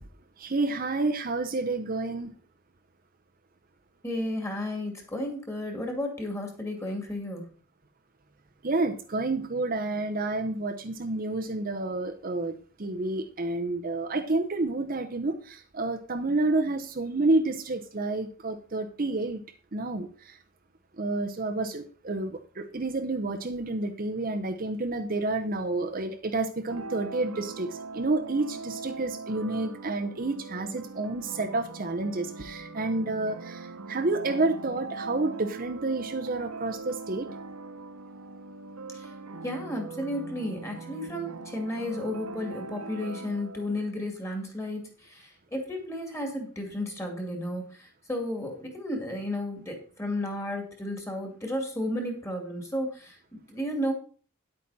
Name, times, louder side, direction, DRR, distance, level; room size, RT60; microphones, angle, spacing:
voice 1, 0.4-2.3 8.6-19.4 19.7-20.4 21.0-37.3, right 2 dB, 40° right, 0.8 m, -29 dB
voice 2, 4.0-7.4 38.9-39.1 39.4-53.9, left 1 dB, 15° left, 2.4 m, -33 dB
sound 1, 26.7-43.9, right 3 dB, 75° right, 0.9 m, -41 dB
10.0 x 8.5 x 4.1 m
head